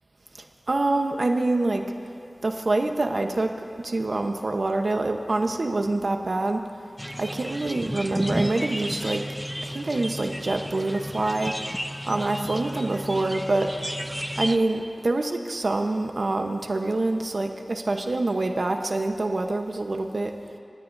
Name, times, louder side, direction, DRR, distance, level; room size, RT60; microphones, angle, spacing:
voice 1, 0.3-1.8 2.4-3.5 3.8-6.9 7.2-9.2 9.6-11.6 12.1-13.7 14.4-20.3, right 2 dB, 55° right, 4 dB, 1.0 m, -26 dB
sound 1, 7.0-14.6, equal, ahead, 0.6 m, -33 dB
30.0 x 17.0 x 2.7 m, 2.5 s
wide cardioid pair, 75°, 0 cm